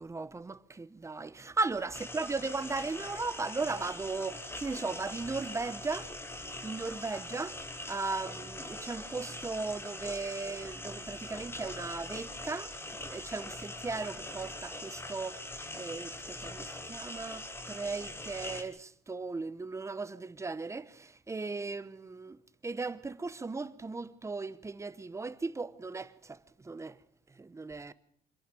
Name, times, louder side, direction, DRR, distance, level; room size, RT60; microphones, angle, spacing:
voice 1, 0.0-6.1 6.6-7.6 7.9-15.5 15.7-22.4 22.6-27.0 27.3-27.9, right 3 dB, 15° right, 0.9 m, -37 dB
sound 1, 1.9-18.6, left 1 dB, 15° left, 2.4 m, -42 dB
26.0 x 11.0 x 9.1 m
cardioid pair, 110°, 17 cm